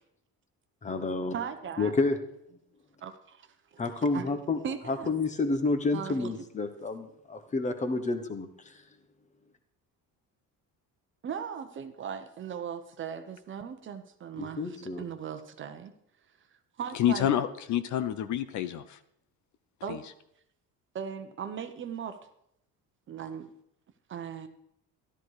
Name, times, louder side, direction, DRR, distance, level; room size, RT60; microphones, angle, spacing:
voice 1, 0.8-1.3 1.8-2.2 2.5-2.6 3.8-4.6 4.9-8.8 14.4-15.0, left 3 dB, 20° left, 9 dB, 1.1 m, -30 dB
voice 2, 1.3-1.9 3.0-3.8 4.1-4.2 4.6-5.1 5.9-6.3 11.2-15.9 16.8-17.3 19.8-20.0 20.9-22.2 23.1-23.5 24.1-24.5, right 7 dB, 30° right, 8 dB, 1.0 m, -38 dB
voice 3, 16.9-19.0 19.9-20.0, left 10 dB, 50° left, 12 dB, 0.7 m, -28 dB
13.5 x 12.5 x 4.9 m, 0.73 s
cardioid pair, 180°, 37 cm